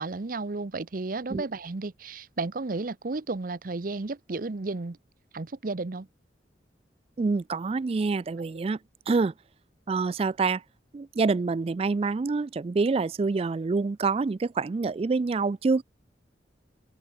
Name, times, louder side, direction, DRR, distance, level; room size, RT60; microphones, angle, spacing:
voice 1, 0.0-5.0 5.3-6.1 8.4-8.5, right 3 dB, 50° right, 0.7 m, -33 dB
voice 2, 7.2-8.8 9.1-9.3 9.9-10.6 10.9-15.8, right 4 dB, 35° right, 0.3 m, -26 dB
head